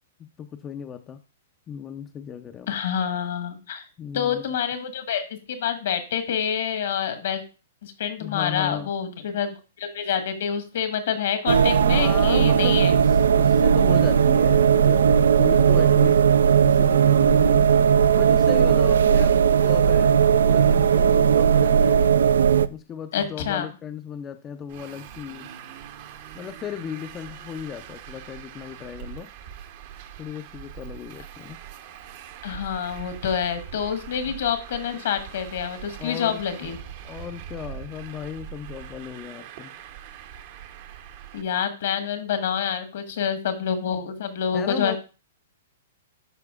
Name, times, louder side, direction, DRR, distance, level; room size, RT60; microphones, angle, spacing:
voice 1, 0.2-1.2 1.7-2.7 4.0-4.4 8.2-8.9 11.6-16.2 16.6-17.7 18.1-22.1 22.7-25.5 26.3-29.3 30.2-31.6 36.0-36.8 37.0-39.7 44.5-45.0, left 8 dB, 25° left, 8 dB, 0.4 m, -36 dB
voice 2, 2.7-3.8 4.1-7.4 7.8-12.9 23.1-23.7 32.4-36.8 41.3-44.9, left 8 dB, 70° left, 8 dB, 1.3 m, -27 dB
sound 1, 11.5-22.7, right 7 dB, 85° right, 0.3 m, -17 dB
Traffic noise roadway noise, 24.7-41.4, right 9 dB, 50° right, 0.8 m, -42 dB
12.0 x 4.5 x 2.4 m, 0.32 s
hypercardioid pair, 135°, 0 cm